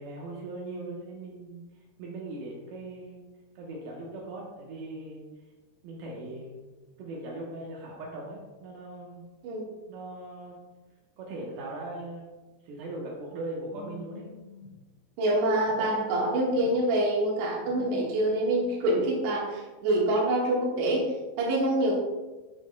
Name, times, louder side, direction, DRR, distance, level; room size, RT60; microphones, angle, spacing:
voice 1, 0.0-1.6 2.0-3.2 3.6-5.2 5.8-6.7 7.0-9.3 9.9-10.6 11.2-12.3 12.6-14.3, right 2 dB, 85° right, -3 dB, 2.1 m, -39 dB
Telephone, 13.6-14.7 15.6-16.7 17.6-18.6, left 3 dB, 75° left, 2.9 m, -47 dB
voice 2, 15.2-21.9, right 1 dB, 70° right, -4 dB, 3.4 m, -26 dB
9.6 x 5.3 x 2.2 m, 1.2 s
omnidirectional pair, 5.7 m